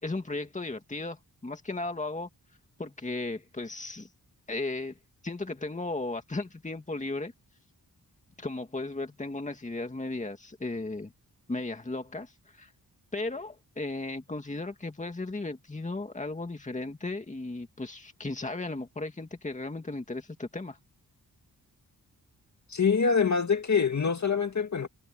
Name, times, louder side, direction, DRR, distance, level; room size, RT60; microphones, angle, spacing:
voice 1, 0.0-2.3 2.8-4.1 4.5-5.0 5.2-7.3 8.4-11.1 11.5-12.7 13.1-20.8, left 2 dB, 20° left, 2.4 m, -35 dB
voice 2, 22.7-24.9, left 5 dB, 50° left, 2.3 m, -25 dB
wide cardioid pair, 145°, 37 cm